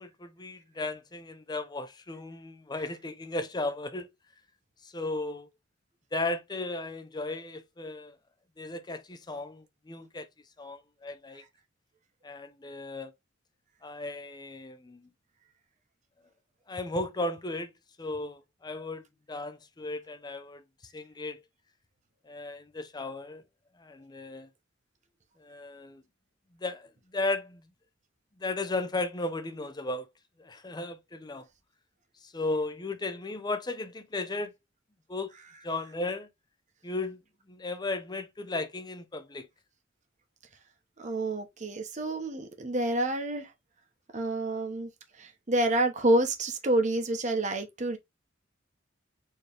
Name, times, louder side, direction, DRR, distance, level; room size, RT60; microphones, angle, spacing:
voice 1, 0.0-4.1 4.8-5.5 6.1-8.2 8.6-10.3 10.6-11.4 12.2-13.1 13.8-15.1 16.7-17.7 18.0-20.6 20.9-21.4 22.3-23.4 23.8-24.5 25.4-26.0 26.6-27.6 28.4-30.1 30.4-31.5 32.2-34.5 35.1-35.3 35.6-36.3 36.8-37.2 37.5-39.5, left 2 dB, 20° left, 0.6 m, -35 dB
voice 2, 41.0-43.5 44.1-44.9 45.2-48.0, right 1 dB, 40° right, 1.0 m, -28 dB
4.5 x 3.1 x 3.3 m
head